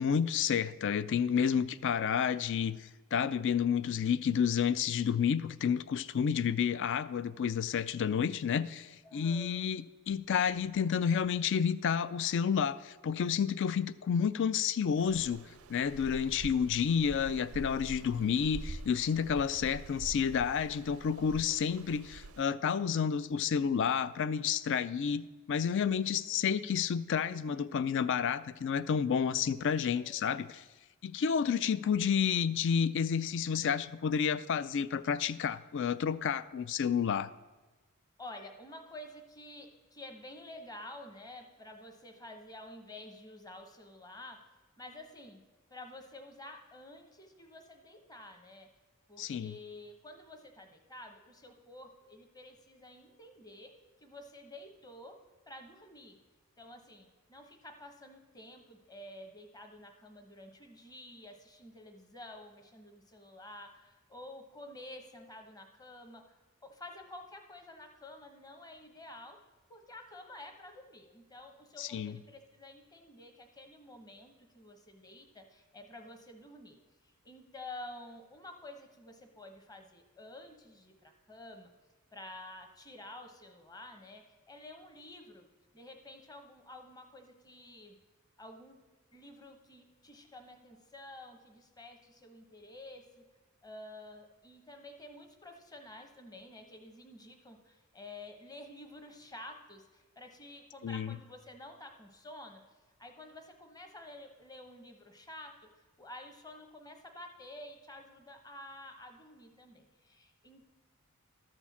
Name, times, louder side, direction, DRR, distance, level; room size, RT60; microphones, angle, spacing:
voice 1, 0.0-15.4 15.7-30.6 31.0-37.3 49.2-49.5 71.8-72.2 100.8-101.1, left 7 dB, 55° left, 16 dB, 0.4 m, -30 dB
voice 2, 9.0-9.7 30.0-30.1 30.4-30.6 38.2-44.4 44.8-45.4 45.7-48.7 49.1-53.7 54.0-55.2 55.5-56.2 56.6-66.4 66.6-69.4 69.7-81.7 82.1-85.5 85.7-88.0 88.4-88.8 89.1-93.3 93.6-102.6 103.0-105.7 106.0-110.6, left 1 dB, 15° left, 5 dB, 1.0 m, -50 dB
sound 1, 15.0-22.4, right 3 dB, 80° right, 0.5 m, -46 dB
12.5 x 4.5 x 7.1 m, 1.2 s
head